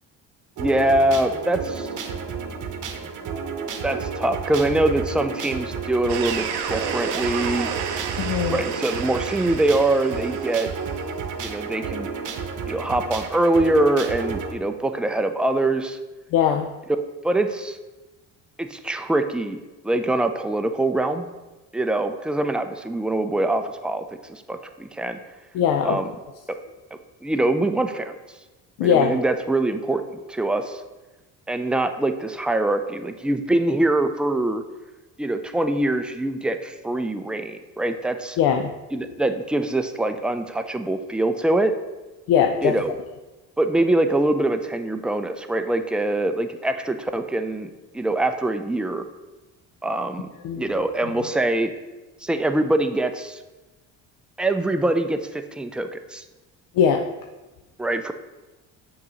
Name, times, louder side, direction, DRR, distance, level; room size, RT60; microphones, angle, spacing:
voice 1, 0.6-1.9 3.8-7.7 8.5-10.7 11.4-12.1 12.7-16.0 17.2-17.8 18.6-21.3 21.7-25.2 25.8-26.1 27.2-28.2 28.8-30.8 31.5-34.6 35.2-38.4 38.9-41.7 42.6-42.9 43.6-49.0 49.8-50.3 50.6-51.7 52.2-53.4 54.4-56.2 57.8-58.1, right 2 dB, 5° right, 7 dB, 0.3 m, -23 dB
sound 1, 0.6-14.5, right 5 dB, 55° right, 0.9 m, -31 dB
sound 2, 6.1-11.0, right 7 dB, 90° right, 0.6 m, -31 dB
voice 2, 8.2-8.6 16.3-16.7 25.5-26.1 28.8-29.2 38.4-38.7 39.0-39.1 42.3-42.8 50.4-50.7 51.0-51.1 56.7-57.1, left 8 dB, 70° left, 4 dB, 0.5 m, -21 dB
6.7 x 2.9 x 4.8 m, 1.1 s
supercardioid pair, 75°, 37 cm